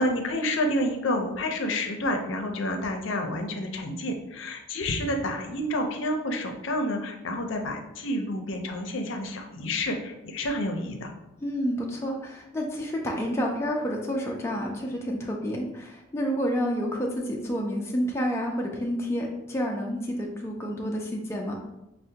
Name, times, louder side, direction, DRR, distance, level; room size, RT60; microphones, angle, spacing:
voice 1, 0.0-11.1, left 1 dB, 70° left, 4 dB, 0.5 m, -29 dB
voice 2, 11.4-21.6, equal, 15° left, -1 dB, 0.3 m, -29 dB
5.4 x 2.1 x 2.7 m, 0.92 s
head